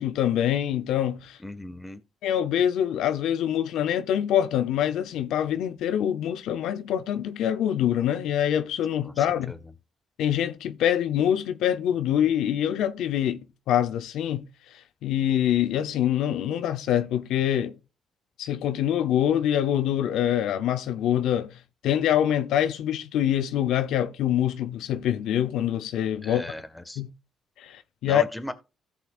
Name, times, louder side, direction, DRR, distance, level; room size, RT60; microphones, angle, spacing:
voice 1, 0.0-1.4 2.2-9.5 10.2-13.4 13.7-14.4 15.0-17.7 18.4-21.6 21.8-26.4 27.0-27.1 27.6-28.2, left 10 dB, 85° left, 0.6 m, -25 dB
voice 2, 1.4-2.0 9.0-9.6 26.2-27.0 28.0-28.5, left 1 dB, 10° left, 1.3 m, -37 dB
16.0 x 5.9 x 2.4 m
cardioid pair, 90°, 0 cm